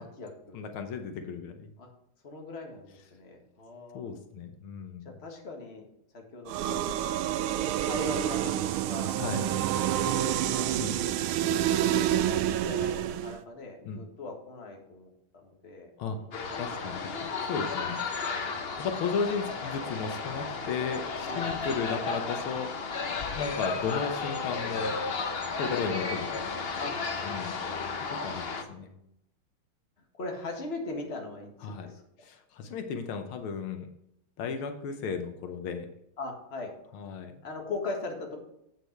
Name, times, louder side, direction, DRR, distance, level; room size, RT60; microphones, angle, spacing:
voice 1, 0.0-0.6 1.8-1.9 2.2-4.2 5.2-5.8 6.1-7.1 7.6-9.2 9.9-10.7 11.7-12.1 12.6-16.6 17.8-17.9 18.3-18.6 21.3-21.5 23.0-23.3 26.8-27.0 27.2-27.8 28.5-29.1 30.2-32.0 36.2-36.7 37.4-38.4, left 3 dB, 30° left, 1 dB, 1.7 m, -40 dB
voice 2, 0.5-1.7 3.9-5.1 9.2-9.5 10.8-11.0 13.9-14.0 16.0-16.2 16.5-17.2 17.5-18.1 18.8-22.7 23.4-25.0 25.6-26.7 27.2-27.5 28.2-28.9 31.6-31.9 32.2-33.9 34.4-35.9 36.9-37.3, left 6 dB, 80° left, 6 dB, 1.7 m, -34 dB
sound 1, 6.5-13.4, right 11 dB, 85° right, 1.5 m, -28 dB
sound 2, 16.3-28.6, left 4 dB, 60° left, 0.6 m, -33 dB
8.2 x 6.8 x 4.5 m, 0.78 s
omnidirectional pair, 2.3 m